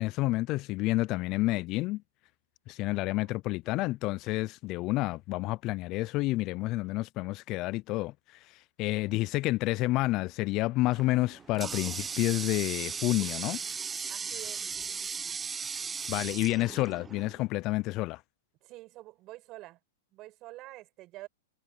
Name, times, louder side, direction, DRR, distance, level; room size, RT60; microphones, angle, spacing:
voice 1, 0.0-2.0 2.7-13.6 16.1-18.2, left 19 dB, 40° left, 0.5 m, -29 dB
voice 2, 2.9-3.3 8.8-9.3 11.3-11.4 14.1-14.6 18.6-19.8 20.1-21.3, right 18 dB, 35° right, 6.9 m, -48 dB
Water tap faucet, 10.9-17.4, right 6 dB, 15° right, 0.9 m, -37 dB
hypercardioid pair, 125°, 0 cm